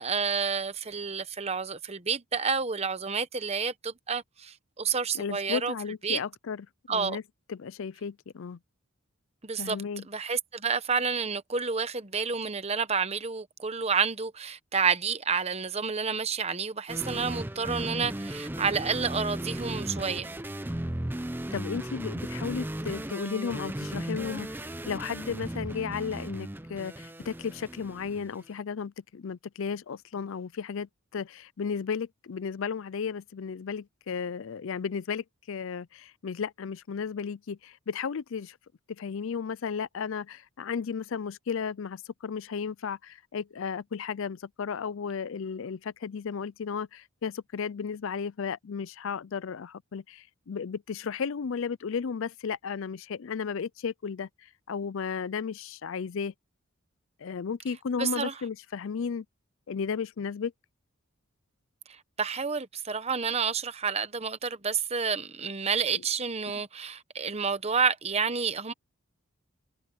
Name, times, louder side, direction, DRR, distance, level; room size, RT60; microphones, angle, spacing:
voice 1, 0.0-5.7 6.0-6.2 6.9-7.2 9.4-9.8 10.1-20.3 58.0-58.3 61.9-68.7, right 5 dB, 30° right, 1.0 m, -29 dB
voice 2, 5.1-7.2 7.5-8.6 9.6-10.0 21.5-38.6 38.9-56.3 57.2-59.2 59.7-60.5 65.9-66.0, left 6 dB, 60° left, 0.4 m, -34 dB
sound 1, 16.9-28.4, right 1 dB, 10° right, 0.6 m, -36 dB
head